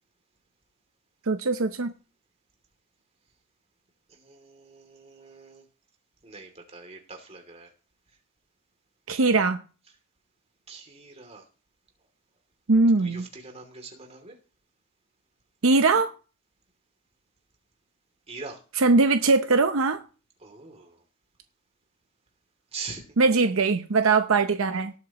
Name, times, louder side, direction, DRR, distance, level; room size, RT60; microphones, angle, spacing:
voice 1, 1.3-1.9 9.1-9.6 12.7-13.2 15.6-16.1 18.8-20.0 23.2-24.9, right 3 dB, 70° right, 8 dB, 0.8 m, -21 dB
voice 2, 4.1-5.6 6.2-7.7 10.7-11.5 12.9-14.4 18.3-18.6 20.4-21.0 22.7-23.1, right 4 dB, 30° right, 4 dB, 2.8 m, -43 dB
19.0 x 8.3 x 3.0 m, 0.36 s
head